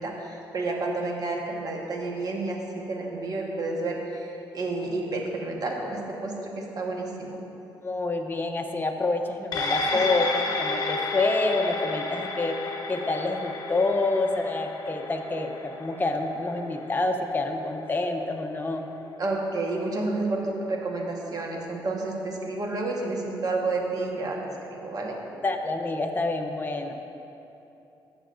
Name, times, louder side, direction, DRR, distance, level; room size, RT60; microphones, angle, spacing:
voice 1, 0.0-2.6 2.9-7.4 9.9-10.0 19.2-24.4 24.6-25.1, right 2 dB, 50° right, 0 dB, 1.3 m, -30 dB
voice 2, 7.8-12.6 12.9-18.9 25.4-26.9, left 2 dB, 25° left, 3 dB, 0.8 m, -27 dB
sound 1, 9.5-18.2 18.6-18.7, left 3 dB, 50° left, 1.0 m, -32 dB
13.5 x 7.1 x 2.6 m, 2.9 s
cardioid pair, 95°, 9 cm